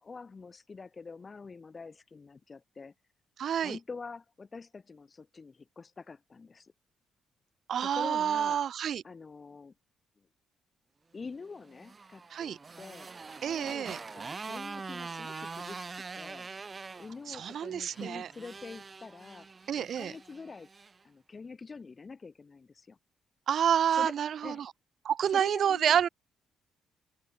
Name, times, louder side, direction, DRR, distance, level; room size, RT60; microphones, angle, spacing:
voice 1, 0.0-2.9 3.6-6.7 7.8-8.6 9.0-9.7 10.2-10.3 11.1-13.1 13.4-16.5 17.0-19.5 19.7-20.7 21.0-23.0 23.9-24.1 24.4-24.6 25.3-26.0, left 4 dB, 30° left, 1.8 m, -46 dB
voice 2, 3.4-3.8 7.7-9.0 12.3-12.6 13.4-14.0 17.3-18.3 19.7-20.1 23.5-24.7 25.0-26.1, right 9 dB, 60° right, 0.5 m, -28 dB
Motorcycle, 11.6-21.0, right 4 dB, 30° right, 2.0 m, -44 dB
open air
cardioid pair, 90°, 0 cm